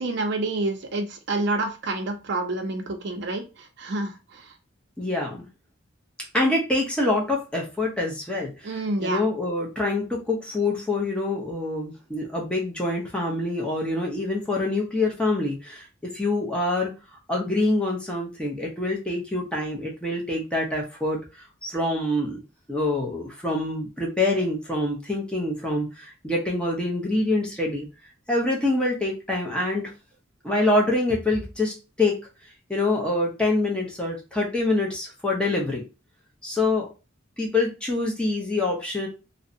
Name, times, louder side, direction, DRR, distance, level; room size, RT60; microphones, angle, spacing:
voice 1, 0.0-4.5 8.6-9.2, right 2 dB, 60° right, 6 dB, 0.5 m, -28 dB
voice 2, 5.0-5.5 6.3-8.7 9.0-16.9 17.3-21.2 21.6-22.4 22.7-27.9 28.3-29.9 30.4-32.2 32.7-35.8 36.4-36.9 37.4-39.1, left 2 dB, 5° left, -2 dB, 0.5 m, -25 dB
2.6 x 2.0 x 2.5 m, 0.30 s
head